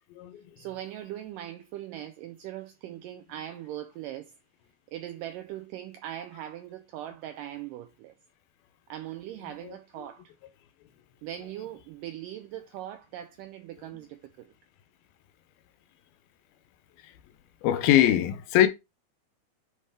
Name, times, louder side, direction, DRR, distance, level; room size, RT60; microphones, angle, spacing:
voice 1, 0.6-4.3 4.9-8.1 8.9-10.3 11.2-14.5, right 12 dB, 90° right, 1.9 m, -40 dB
voice 2, 17.6-18.7, left 12 dB, 80° left, 2.4 m, -22 dB
9.9 x 4.2 x 3.4 m
omnidirectional pair, 4.5 m